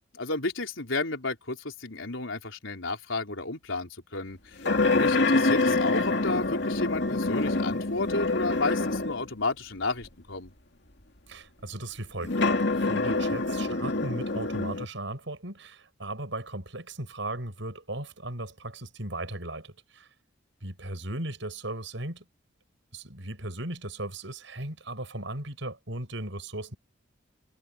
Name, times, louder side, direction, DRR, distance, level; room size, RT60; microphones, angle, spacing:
voice 1, 0.1-10.5, left 3 dB, 75° left, 4.0 m, -32 dB
sound 1, 4.6-9.3 10.0-10.1 12.2-14.8, left 3 dB, 55° left, 2.7 m, -26 dB
voice 2, 11.3-12.4 12.7-20.1 20.6-22.2 22.9-26.8, right 1 dB, 65° right, 7.6 m, -37 dB
head